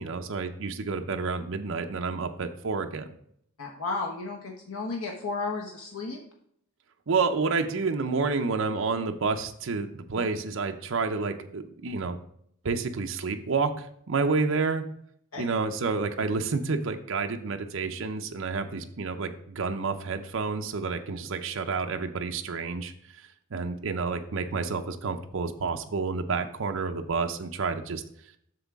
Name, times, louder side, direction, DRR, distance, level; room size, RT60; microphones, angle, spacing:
voice 1, 0.0-3.1 7.1-12.2 12.6-14.8 15.4-28.0, right 4 dB, 60° right, 5 dB, 0.6 m, -29 dB
voice 2, 3.6-6.2 15.3-15.4, left 3 dB, 75° left, 1 dB, 0.9 m, -33 dB
7.7 x 6.4 x 3.5 m, 0.67 s
head